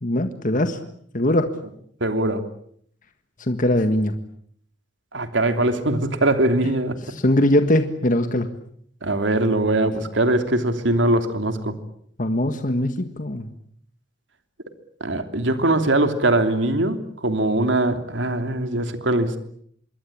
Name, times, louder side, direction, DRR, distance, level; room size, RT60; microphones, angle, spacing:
voice 1, 0.0-0.8 1.1-1.5 3.4-4.1 7.1-8.5 12.2-13.5, left 1 dB, 45° left, 8 dB, 1.7 m, -21 dB
voice 2, 2.0-2.4 5.1-7.0 9.0-11.7 15.0-19.4, right 2 dB, 80° right, 8 dB, 3.1 m, -21 dB
26.5 x 22.5 x 8.8 m, 0.67 s
head